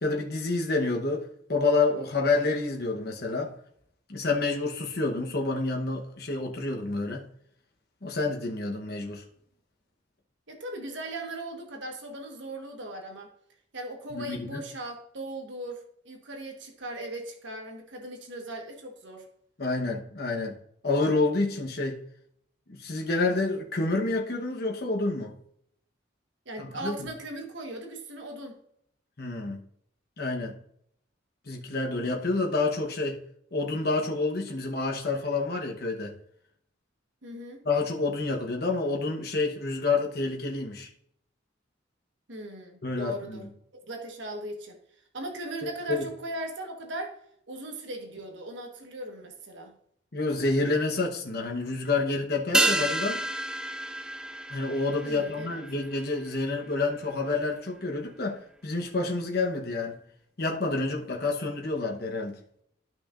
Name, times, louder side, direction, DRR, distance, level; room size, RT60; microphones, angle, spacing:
voice 1, 0.0-3.6 4.1-7.3 8.0-9.2 14.1-14.6 19.6-20.6 20.8-22.0 22.7-25.3 26.6-27.1 29.2-29.6 30.2-30.5 31.5-33.2 33.5-36.1 37.6-40.9 42.8-43.5 45.6-46.1 50.1-53.3 54.5-60.0 60.4-62.4, left 3 dB, 55° left, 1.0 m, -28 dB
voice 2, 10.5-13.3 13.7-19.3 26.4-28.6 37.2-37.6 42.3-43.5 43.7-44.8 45.1-47.1 47.5-49.7 55.0-55.6, right 1 dB, 70° right, 1.3 m, -38 dB
sound 1, 52.5-57.3 57.5-57.6, right 1 dB, 5° right, 0.3 m, -30 dB
12.5 x 5.8 x 2.5 m
head